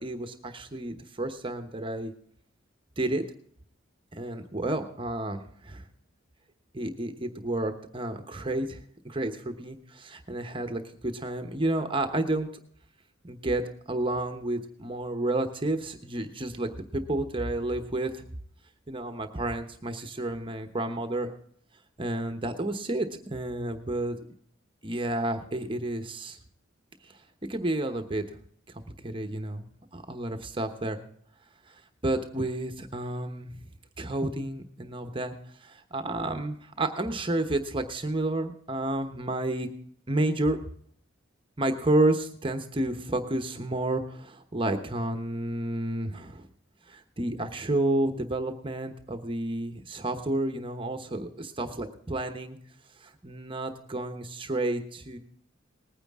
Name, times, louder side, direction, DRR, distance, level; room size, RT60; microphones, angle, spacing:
voice 1, 0.0-2.1 3.0-3.2 4.1-5.8 6.7-12.5 13.2-18.2 18.9-21.3 22.0-24.2 24.8-26.4 27.0-27.2 27.5-28.2 28.7-29.7 29.9-31.0 31.7-33.5 34.0-39.7 40.1-40.6 41.6-46.5 46.9-52.6 53.0-55.2, right 1 dB, 25° right, 6 dB, 1.0 m, -31 dB
19.5 x 9.7 x 3.6 m, 0.64 s
head